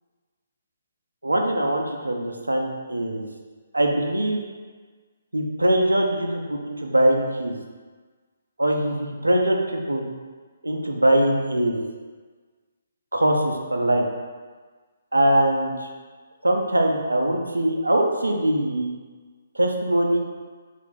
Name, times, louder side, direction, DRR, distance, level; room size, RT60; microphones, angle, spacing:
voice 1, 1.2-3.3 3.7-4.4 5.3-7.6 8.6-10.0 10.6-12.0 13.1-14.1 15.1-15.9 16.4-18.9 19.6-20.2, right 1 dB, 80° right, 2 dB, 0.4 m, -22 dB
3.2 x 2.4 x 3.1 m, 1.4 s
figure-of-eight pair, 135°, 0 cm